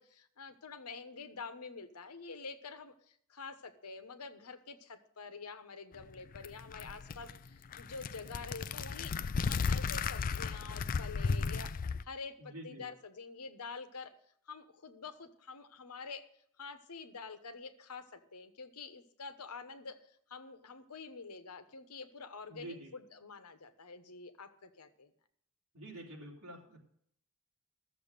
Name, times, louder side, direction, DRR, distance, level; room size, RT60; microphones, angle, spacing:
voice 1, 0.0-14.1 14.5-16.3 16.6-25.1, left 4 dB, 85° left, 9 dB, 1.1 m, -47 dB
sound 1, 6.0-12.0, left 5 dB, 40° left, 0.4 m, -35 dB
voice 2, 12.4-12.9 22.5-22.9 25.7-26.8, right 1 dB, 70° right, -2 dB, 3.4 m, -47 dB
13.5 x 7.0 x 6.7 m, 0.68 s
head